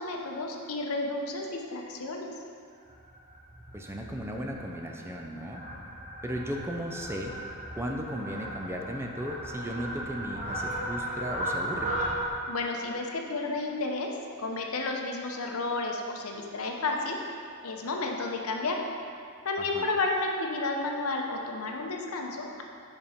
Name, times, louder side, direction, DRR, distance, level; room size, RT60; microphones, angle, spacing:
voice 1, 0.0-2.3 12.5-17.2 17.6-18.9 19.4-22.6, left 3 dB, 75° left, 1 dB, 0.8 m, -32 dB
Fowl, 2.9-12.3, right 1 dB, 35° right, 0.9 m, -36 dB
voice 2, 3.7-5.6 6.2-7.3 7.8-11.9 19.7-19.9, equal, 10° right, 1 dB, 0.4 m, -35 dB
5.3 x 5.3 x 5.0 m, 2.3 s
head